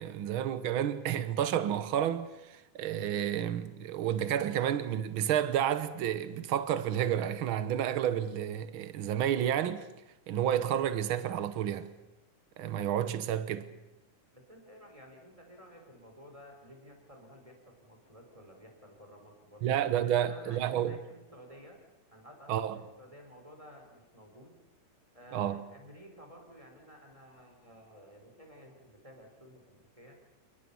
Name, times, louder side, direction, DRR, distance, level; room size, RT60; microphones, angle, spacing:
voice 1, 0.0-9.8 10.3-11.9 12.6-13.7 19.6-21.0 22.5-22.8 25.3-25.6, right 10 dB, 75° right, 1.2 m, -30 dB
voice 2, 14.5-19.7 20.0-21.8 22.1-24.5 25.1-30.2, equal, 10° right, 4.3 m, -53 dB
28.0 x 20.5 x 7.1 m
omnidirectional pair, 3.6 m